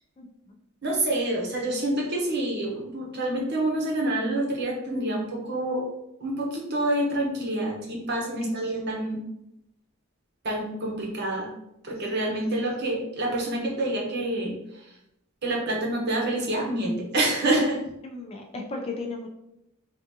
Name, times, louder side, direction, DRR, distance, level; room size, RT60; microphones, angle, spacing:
voice 1, 0.2-0.6 8.4-8.7 12.1-12.2 12.5-12.6 18.0-19.3, left 3 dB, 25° left, 1 dB, 0.4 m, -36 dB
voice 2, 0.8-5.9 6.2-9.2 10.4-11.5 11.8-14.6 15.4-17.8, right 1 dB, 50° right, -2 dB, 0.8 m, -27 dB
3.4 x 2.5 x 2.7 m, 0.83 s
head